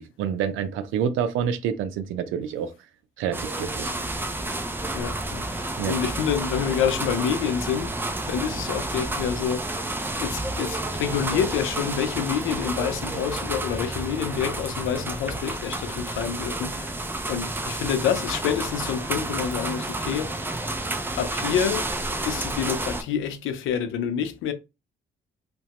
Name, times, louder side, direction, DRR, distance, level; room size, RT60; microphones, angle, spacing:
voice 1, 0.0-2.7 3.2-3.9 5.5-6.0, right 8 dB, 90° right, 0.5 m, -28 dB
sound 1, 3.3-23.0, right 2 dB, 10° right, 0.4 m, -30 dB
voice 2, 4.9-9.8 10.2-17.0 17.3-20.4 21.2-21.9 22.3-24.5, left 8 dB, 85° left, 0.5 m, -28 dB
2.8 x 2.2 x 2.8 m
cardioid pair, 90°, 20 cm